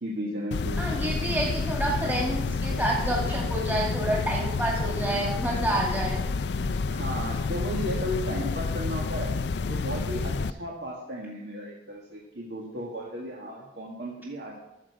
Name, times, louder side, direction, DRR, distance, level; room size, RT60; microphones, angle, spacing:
voice 1, 0.0-1.3 6.9-9.3 9.7-14.6, equal, 75° right, -3 dB, 1.8 m, -35 dB
sound 1, 0.5-10.5, left 4 dB, 70° left, 0.4 m, -29 dB
voice 2, 0.8-6.2, right 1 dB, 10° right, -3 dB, 2.2 m, -28 dB
14.0 x 7.5 x 4.9 m, 0.96 s
head